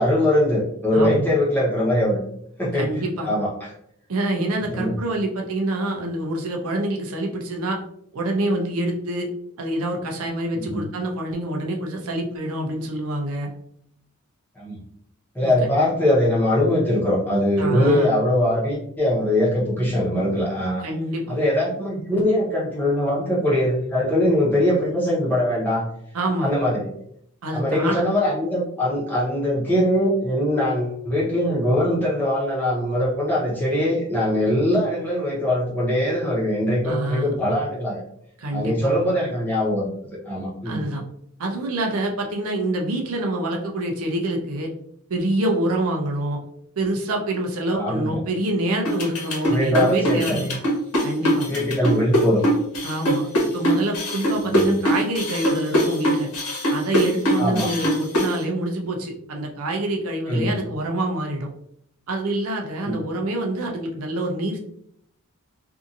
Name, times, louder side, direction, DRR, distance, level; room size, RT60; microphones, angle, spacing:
voice 1, 0.0-2.2 2.6-3.7 4.7-4.9 10.6-10.9 14.6-14.8 15.3-20.8 21.3-25.9 26.4-26.9 27.5-38.0 38.5-40.0 40.2-40.8 47.7-48.2 49.5-50.4 51.5-52.4 54.4-54.8 57.4-57.7 60.3-60.5 62.8-63.0, left 1 dB, 10° left, -7 dB, 0.9 m, -22 dB
voice 2, 0.9-1.3 2.7-3.3 4.1-7.8 8.1-9.3 9.6-13.5 15.4-15.5 17.6-18.1 20.8-21.4 26.1-26.5 27.4-28.0 36.8-37.3 38.4-38.9 40.6-41.0 41.4-44.7 45.1-46.4 46.8-50.5 51.0-51.5 51.8-51.9 52.8-56.3 56.7-61.5 62.1-64.6, right 1 dB, 70° right, 2 dB, 0.6 m, -26 dB
sound 1, 48.8-58.3, equal, 85° left, 1.0 m, -21 dB
2.7 x 2.5 x 2.5 m, 0.69 s
head